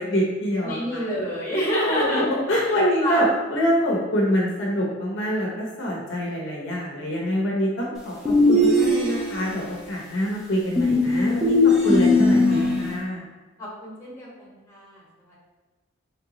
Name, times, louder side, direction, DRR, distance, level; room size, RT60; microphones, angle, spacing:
voice 1, 0.0-1.0 1.9-11.6 11.8-13.2, equal, 65° left, -3 dB, 0.8 m, -25 dB
voice 2, 0.6-2.2 2.6-2.7 3.0-3.2 11.8-12.8 13.6-15.3, equal, 15° left, -7 dB, 1.3 m, -29 dB
sound 1, 8.2-9.5 10.8-13.0, left 2 dB, 5° right, 0.7 m, -19 dB
3.7 x 3.4 x 2.9 m, 1.2 s
head